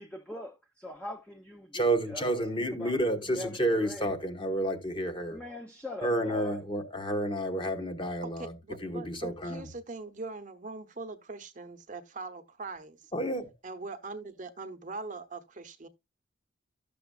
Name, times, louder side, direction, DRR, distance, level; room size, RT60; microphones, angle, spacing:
voice 1, 0.0-2.3 2.7-4.1 5.3-6.6, left 1 dB, 5° left, 0.7 m, -42 dB
voice 2, 1.7-5.4 6.0-8.5 8.8-9.7 13.1-13.5, right 1 dB, 25° left, 1.2 m, -30 dB
voice 3, 8.2-13.0 13.6-15.9, right 3 dB, 40° right, 0.9 m, -42 dB
12.5 x 6.9 x 2.4 m
head